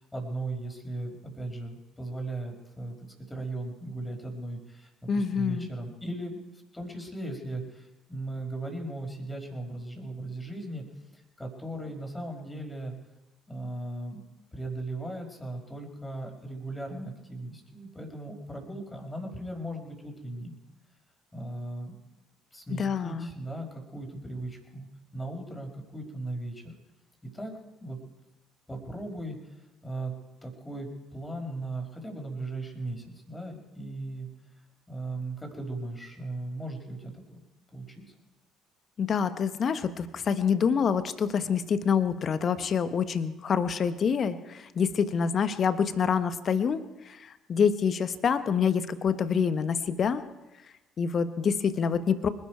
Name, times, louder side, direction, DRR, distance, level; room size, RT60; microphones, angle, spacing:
voice 1, 0.1-2.9 3.3-6.4 6.7-10.8 11.1-12.9 13.5-14.2 14.5-20.5 21.3-21.9 22.5-24.9 25.1-26.7 27.3-27.5 27.8-28.0 28.7-29.5 29.8-30.1 30.4-34.3 34.9-37.4 37.7-38.0, right 2 dB, 15° left, 3 dB, 5.1 m, -37 dB
voice 2, 5.1-5.7 22.7-23.3 39.0-50.2 51.0-52.3, left 6 dB, 45° left, 12 dB, 1.2 m, -26 dB
25.5 x 12.0 x 4.6 m, 1.0 s
figure-of-eight pair, 50°, 0 cm